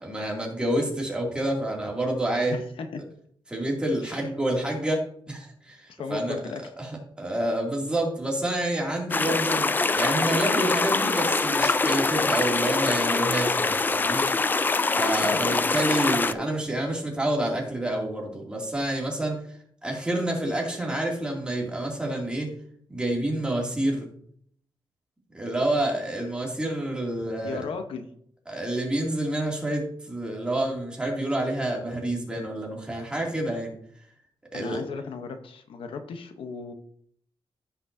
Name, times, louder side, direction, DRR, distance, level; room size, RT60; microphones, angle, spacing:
voice 1, 0.0-2.6 3.5-5.8 6.1-6.4 6.8-6.9 7.2-9.7 10.0-14.2 14.9-19.4 19.8-22.5 22.9-24.1 25.3-27.6 28.5-33.7 34.5-34.8, right 1 dB, 10° right, -1 dB, 2.5 m, -28 dB
voice 2, 2.5-3.0 4.0-4.3 5.9-6.6 15.2-15.7 27.4-28.1 34.5-36.7, left 5 dB, 80° left, 7 dB, 0.9 m, -36 dB
sound 1, 9.1-16.3, left 3 dB, 20° left, 0.4 m, -24 dB
15.5 x 5.9 x 2.7 m, 0.65 s
wide cardioid pair, 145°, 9 cm